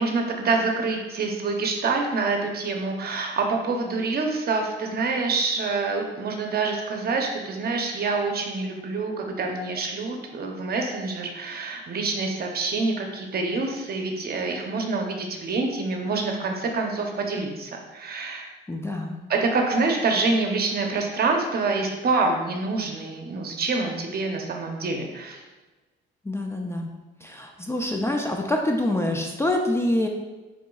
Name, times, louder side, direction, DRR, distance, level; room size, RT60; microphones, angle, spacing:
voice 1, 0.0-18.5 19.3-25.4, right 3 dB, 50° right, 2 dB, 0.8 m, -26 dB
voice 2, 18.7-19.1 26.2-26.9 27.2-30.1, left 1 dB, 15° left, 2 dB, 0.4 m, -26 dB
4.9 x 3.7 x 2.3 m, 1.2 s
cardioid pair, 90°, 20 cm